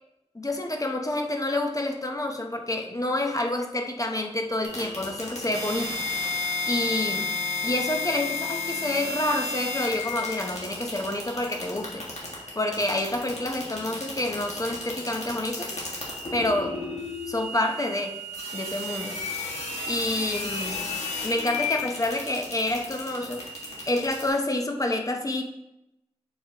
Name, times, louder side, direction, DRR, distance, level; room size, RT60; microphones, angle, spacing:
voice 1, 0.3-6.1 6.6-7.3 7.6-12.1 12.5-15.8 16.3-16.8 17.3-18.2 18.5-19.2 19.9-21.0 21.2-23.4 23.9-25.4, left 1 dB, 30° left, 3 dB, 0.8 m, -28 dB
sound 1, 4.6-24.3, left 3 dB, 80° left, 1.7 m, -33 dB
7.0 x 5.1 x 2.9 m, 0.88 s
wide cardioid pair, 65°, 11 cm